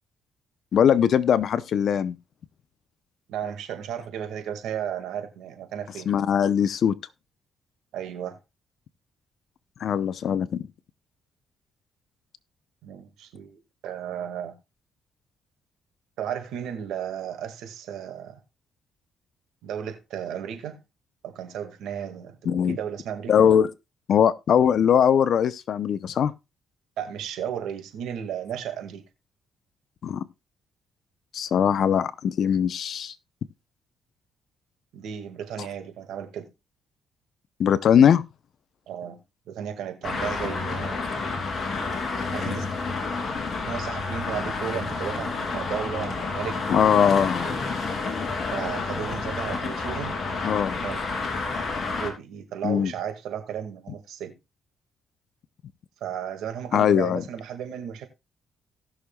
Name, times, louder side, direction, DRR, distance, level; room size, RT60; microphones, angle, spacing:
voice 1, 0.7-2.2 6.1-7.0 9.8-10.6 22.5-22.8 23.3-23.7 24.1-26.3 30.0-30.2 31.3-33.1 37.6-38.2 46.7-47.5 50.4-50.8 52.6-52.9 56.7-57.2, left 8 dB, 65° left, 0.7 m, -21 dB
voice 2, 3.3-6.1 7.9-8.4 12.8-14.5 16.2-18.4 19.6-20.8 21.2-23.5 27.0-29.1 34.9-36.5 38.9-39.2 39.5-41.2 42.3-42.7 43.7-47.0 47.4-47.5 48.5-50.2 50.7-51.0 52.0-54.4 56.0-58.1, right 9 dB, 85° right, 2.0 m, -34 dB
Traffic noise roadway noise, 40.0-52.1, left 4 dB, 45° left, 3.0 m, -30 dB
18.0 x 6.5 x 2.3 m
cardioid pair, 90°, 0 cm